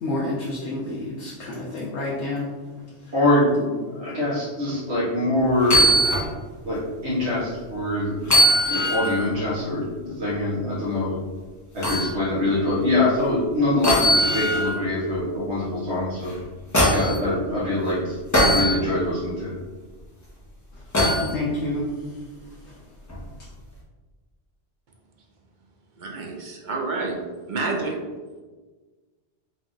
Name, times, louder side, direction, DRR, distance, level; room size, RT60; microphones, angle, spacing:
voice 1, 0.0-2.5 21.2-21.8, left 2 dB, 75° left, -6 dB, 1.0 m, -28 dB
voice 2, 3.1-5.9 6.6-11.1 11.7-16.3 16.9-18.2 18.4-19.5, left 1 dB, 70° right, -9 dB, 1.3 m, -24 dB
sound 1, 5.6-6.3 6.7-6.8 8.2-9.2 11.8-12.1 13.8-14.8 16.2-17.2 18.3-18.7 20.9-21.3 23.1-23.2, equal, 15° left, 0.8 m, -20 dB
voice 3, 26.0-27.2 27.5-28.0, right 3 dB, 55° right, 0 dB, 0.6 m, -28 dB
4.1 x 2.4 x 3.7 m, 1.4 s
omnidirectional pair, 1.2 m